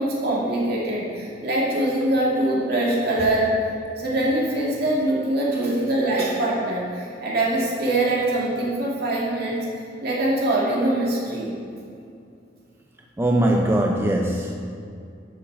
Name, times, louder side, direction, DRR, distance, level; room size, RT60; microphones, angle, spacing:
voice 1, 0.0-3.5 4.0-9.7 10.0-11.5, right 1 dB, 55° right, -4 dB, 2.4 m, -23 dB
voice 2, 13.2-14.5, right 1 dB, 15° right, 1 dB, 0.5 m, -21 dB
11.0 x 7.1 x 4.7 m, 2.4 s
head